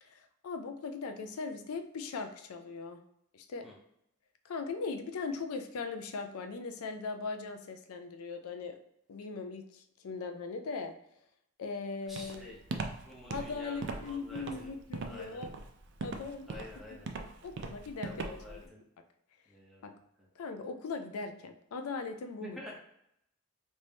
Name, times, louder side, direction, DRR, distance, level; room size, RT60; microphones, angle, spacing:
voice 1, 0.0-3.0 3.3-3.7 4.4-8.8 9.1-10.9 11.6-12.5 13.3-15.5 16.0-16.5 16.9-17.0 17.4-18.7 19.8-19.9 20.4-22.6, left 4 dB, 85° left, 6 dB, 0.4 m, -39 dB
voice 2, 12.1-12.6 13.0-14.7 15.1-15.5 16.5-17.1 18.0-18.8 19.5-19.8 22.4-22.7, left 1 dB, ahead, -4 dB, 0.8 m, -48 dB
Walk footsteps, 12.2-18.6, right 3 dB, 55° right, 0.4 m, -39 dB
3.3 x 2.7 x 3.3 m, 0.76 s
head